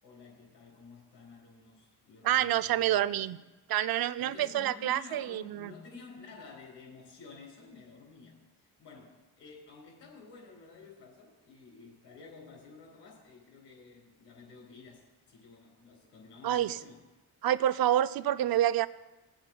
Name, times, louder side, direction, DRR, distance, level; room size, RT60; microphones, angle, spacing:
voice 1, 0.0-3.2 4.2-17.0, left 4 dB, 85° left, 3.8 m, -52 dB
voice 2, 2.2-3.4 3.7-5.7 16.4-16.8 17.4-18.9, right 12 dB, 60° right, 0.5 m, -28 dB
22.5 x 7.9 x 2.3 m
cardioid pair, 70°, 41 cm